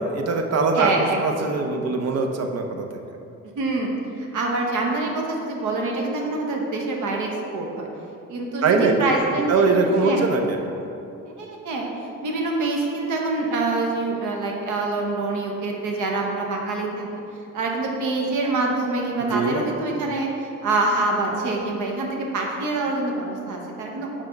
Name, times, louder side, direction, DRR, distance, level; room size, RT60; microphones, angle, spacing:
voice 1, 0.0-0.9 1.2-3.0 8.6-8.9 9.5-10.6 19.2-19.6, right 4 dB, 55° right, 4 dB, 0.7 m, -22 dB
voice 2, 0.7-1.6 3.6-7.9 8.3-10.3 11.4-11.9 12.2-17.0 17.5-24.2, right 2 dB, 80° right, 0 dB, 1.0 m, -25 dB
4.8 x 4.3 x 5.1 m, 2.7 s
cardioid pair, 90°, 30 cm